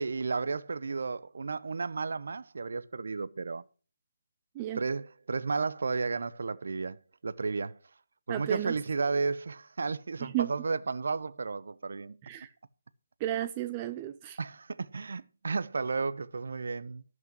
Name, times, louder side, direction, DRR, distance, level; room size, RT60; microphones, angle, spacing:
voice 1, 0.0-3.6 4.8-7.8 8.3-12.2 14.4-17.0, right 4 dB, 65° right, 0.7 m, -33 dB
voice 2, 8.3-8.8 10.2-10.5 12.2-12.5 13.2-14.4, right 13 dB, 25° right, 0.5 m, -33 dB
11.5 x 6.2 x 7.3 m
figure-of-eight pair, 155°, 0 cm